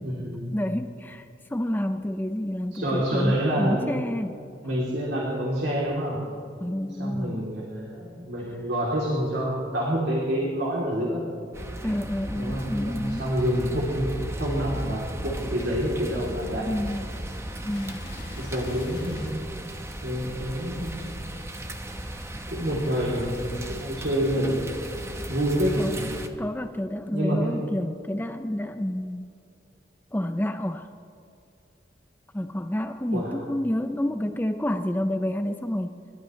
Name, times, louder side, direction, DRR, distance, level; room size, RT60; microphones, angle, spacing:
voice 1, 0.0-0.5 2.7-3.9 4.6-6.2 7.0-11.2 12.3-16.7 18.4-19.3 20.0-21.1 22.5-24.7 25.3-26.1 27.1-27.6 33.1-33.3, equal, 75° right, -4 dB, 3.0 m, -27 dB
voice 2, 0.5-4.4 6.6-7.4 8.4-8.6 11.8-13.3 16.7-17.1 17.6-18.1 25.8-26.0 26.4-29.3 30.1-30.9 32.3-36.0, left 1 dB, 10° left, 7 dB, 0.5 m, -29 dB
sound 1, 11.5-26.3, right 1 dB, 15° right, 0.9 m, -36 dB
sound 2, 17.7-20.2 21.6-22.9, left 1 dB, 70° left, 3.1 m, -43 dB
29.0 x 13.0 x 3.2 m, 2.5 s
head